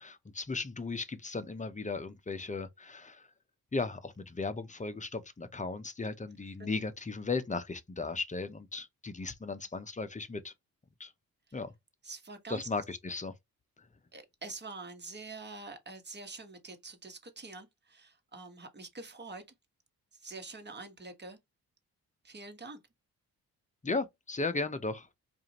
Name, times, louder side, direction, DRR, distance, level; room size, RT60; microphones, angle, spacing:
voice 1, 0.0-3.3 3.7-10.5 11.0-11.1 11.5-11.7 12.5-13.3 13.8-13.9 23.8-25.1, left 3 dB, 20° left, 0.7 m, -36 dB
voice 2, 12.0-12.6 14.1-19.4 20.1-21.4 22.2-22.8, right 3 dB, 25° right, 1.3 m, -46 dB
4.7 x 2.6 x 2.9 m
supercardioid pair, 60°, 38 cm